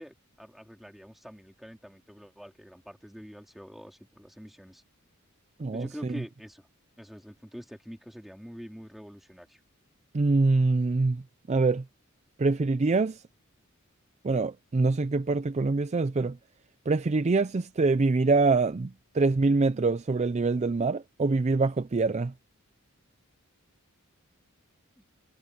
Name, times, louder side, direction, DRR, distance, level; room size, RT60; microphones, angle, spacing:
voice 1, 0.0-4.8 5.7-6.7 7.0-9.6, equal, ahead, 3.6 m, -45 dB
voice 2, 5.6-6.2 10.1-11.2 11.5-11.8 12.4-13.2 14.2-16.4 16.9-22.3, right 3 dB, 30° right, 0.5 m, -25 dB
head